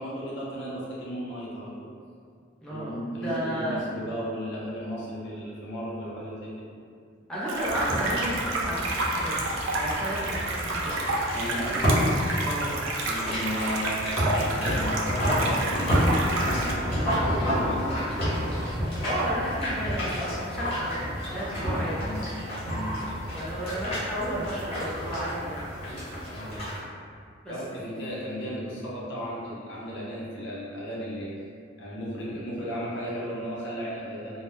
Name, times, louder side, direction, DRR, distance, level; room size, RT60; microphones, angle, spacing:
voice 1, 0.0-1.9 2.7-6.7 11.3-11.8 13.0-18.2 22.0-22.2 22.6-23.0 26.3-26.6 27.5-31.3 31.8-34.4, equal, 60° left, -6 dB, 0.6 m, -35 dB
voice 2, 2.6-3.8 7.3-9.5 9.8-11.1 12.4-12.8 19.0-22.0 23.3-25.7 27.4-27.8, equal, 5° left, -10 dB, 0.4 m, -32 dB
sound 1, 7.5-16.7, right 2 dB, 75° right, 0.4 m, -30 dB
sound 2, 7.6-26.8, equal, 30° left, 0.8 m, -30 dB
2.1 x 2.1 x 3.0 m, 2.2 s
head